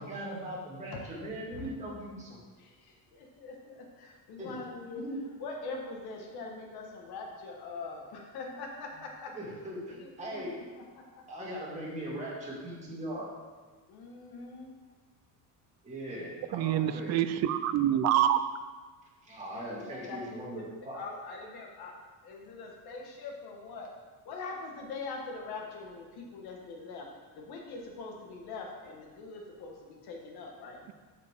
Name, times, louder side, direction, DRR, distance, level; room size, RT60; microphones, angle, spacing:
voice 1, 0.0-2.4 4.4-4.5 5.0-5.2 9.4-10.5 11.3-13.3 15.8-17.2 19.2-21.0, right 1 dB, 15° right, -6 dB, 2.1 m, -39 dB
voice 2, 2.6-5.0 5.4-9.3 10.0-11.2 13.9-14.7 19.7-20.6 20.9-21.9 22.2-23.9 24.2-27.1 27.3-30.8, left 3 dB, 70° left, 0 dB, 1.5 m, -43 dB
voice 3, 16.5-18.4, right 11 dB, 45° right, 11 dB, 0.4 m, -26 dB
8.0 x 6.7 x 3.6 m, 1.4 s
cardioid pair, 160°, 40 cm